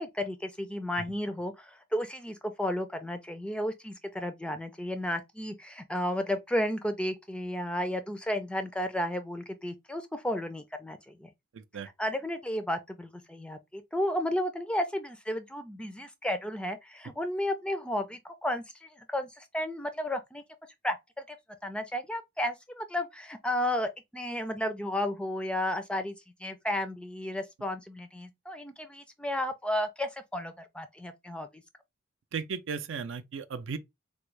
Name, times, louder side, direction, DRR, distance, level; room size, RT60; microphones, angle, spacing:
voice 1, 0.0-11.3 12.0-20.4 20.8-21.0 21.3-21.4 21.6-26.2 26.4-31.5, left 1 dB, 5° left, 0.3 m, -33 dB
voice 2, 11.5-11.9 32.3-33.8, right 6 dB, 80° right, 0.4 m, -36 dB
3.5 x 2.1 x 3.1 m
head